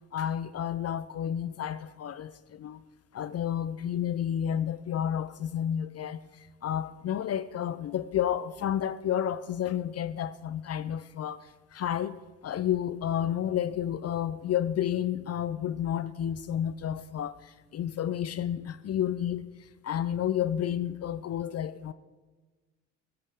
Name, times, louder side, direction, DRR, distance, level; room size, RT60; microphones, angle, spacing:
voice 1, 0.1-2.8 3.1-21.9, left 10 dB, 45° left, 0.6 m, -31 dB
15.0 x 13.5 x 3.6 m
supercardioid pair, 65°, 35 cm